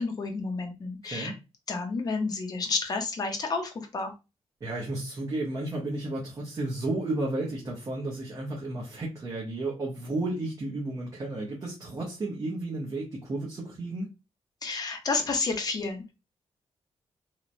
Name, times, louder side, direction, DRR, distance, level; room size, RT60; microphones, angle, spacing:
voice 1, 0.0-1.3 1.7-4.1 14.6-16.1, left 4 dB, 35° left, 0.5 m, -30 dB
voice 2, 1.0-1.3 4.6-14.1, right 2 dB, 30° right, 0.6 m, -33 dB
2.9 x 2.1 x 2.4 m
wide cardioid pair, 165°, 11 cm